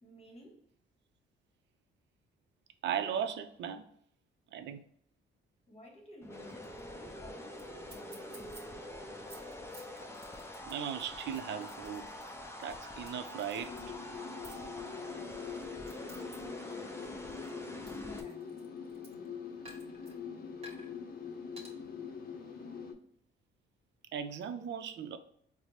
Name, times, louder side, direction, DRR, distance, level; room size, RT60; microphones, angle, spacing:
voice 1, 0.0-0.7 5.7-6.6 7.0-8.6 15.3-18.5, left 1 dB, 30° left, 1.1 m, -54 dB
voice 2, 2.8-3.8 4.5-4.8 10.7-12.0 12.6-13.7 24.1-25.2, right 8 dB, 65° right, 0.5 m, -37 dB
sound 1, 6.2-18.2, left 1 dB, 15° left, 0.4 m, -45 dB
sound 2, 6.3-6.8 7.1-7.2 7.6-7.7 7.9-8.6 9.1-13.1 13.4-13.8 14.4-14.6 15.3-16.4 16.7-19.3 19.6-20.1 20.6-20.9 21.6-21.7, equal, 30° right, 1.2 m, -54 dB
sound 3, 13.6-22.9, left 6 dB, 50° left, 0.7 m, -44 dB
4.1 x 2.0 x 3.1 m
cardioid pair, 90°, 20 cm